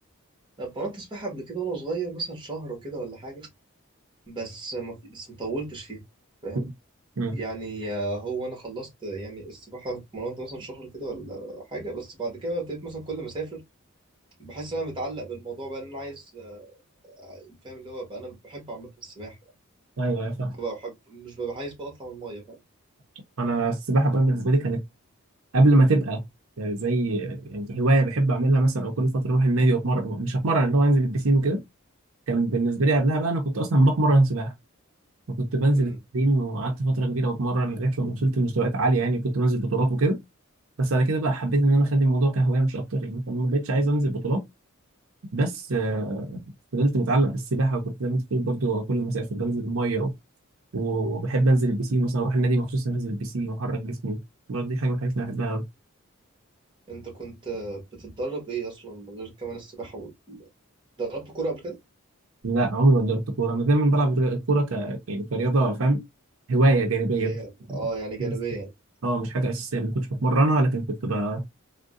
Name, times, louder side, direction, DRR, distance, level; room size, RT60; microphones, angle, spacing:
voice 1, 0.6-3.5 4.3-6.0 6.4-6.7 7.3-13.6 14.4-16.8 17.2-19.4 20.6-22.6 35.7-36.0 56.9-60.5 61.0-61.8 67.2-68.7, right 3 dB, 20° right, 1.3 m, -34 dB
voice 2, 20.0-20.6 23.4-24.8 25.5-26.2 26.6-31.6 32.3-34.5 35.3-40.2 40.8-44.4 45.3-50.1 50.7-54.2 54.5-55.6 62.4-66.0 66.5-67.3 68.2-68.3 69.0-71.4, right 2 dB, 75° right, 0.7 m, -23 dB
3.6 x 2.2 x 2.4 m
head